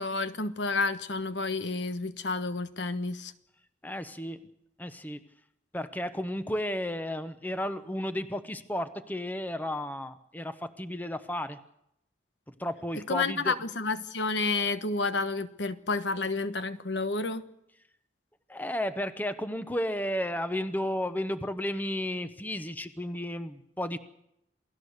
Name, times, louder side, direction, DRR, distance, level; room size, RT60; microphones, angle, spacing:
voice 1, 0.0-3.3 13.1-17.4, left 3 dB, 85° left, 11 dB, 1.2 m, -30 dB
voice 2, 3.8-4.5 4.8-5.2 5.7-11.6 12.5-13.5 18.5-24.0, left 1 dB, 10° left, 10 dB, 0.8 m, -33 dB
28.0 x 17.5 x 6.6 m, 0.81 s
head